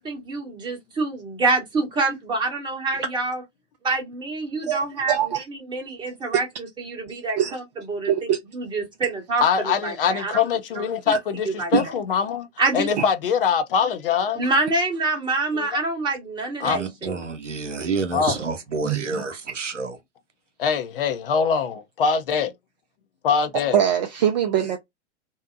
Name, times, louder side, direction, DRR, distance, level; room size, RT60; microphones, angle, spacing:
voice 1, 0.0-3.4 3.8-5.1 5.5-6.5 6.8-7.6 7.9-10.5 10.7-11.1 11.4-11.7 12.6-12.9 14.3-17.2, right 3 dB, 10° right, 1.0 m, -26 dB
voice 2, 5.1-5.4 7.4-7.6 8.0-8.4 11.7-11.9 13.0-13.1 18.8-19.2 23.7-24.8, right 9 dB, 40° right, 0.5 m, -22 dB
voice 3, 9.4-12.5 12.7-14.4 15.5-15.7 16.6-16.8 18.1-18.4 20.6-22.5 23.2-23.8, left 6 dB, 50° left, 0.6 m, -23 dB
voice 4, 16.6-20.0, right 4 dB, 80° right, 0.8 m, -29 dB
2.7 x 2.0 x 2.5 m
figure-of-eight pair, 100°, 36 cm